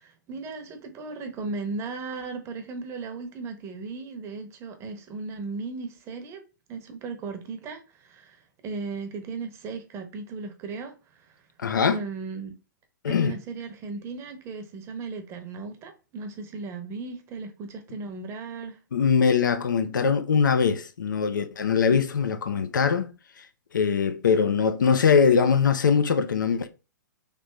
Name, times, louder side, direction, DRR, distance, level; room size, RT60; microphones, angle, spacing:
voice 1, 0.0-6.4 6.7-11.4 11.9-12.5 13.1-18.8, right 4 dB, 25° right, 0.8 m, -36 dB
voice 2, 11.6-12.0 13.0-13.4 18.9-23.1 23.7-26.7, left 6 dB, 75° left, 0.5 m, -22 dB
3.3 x 2.6 x 3.2 m
hypercardioid pair, 120°, 10 cm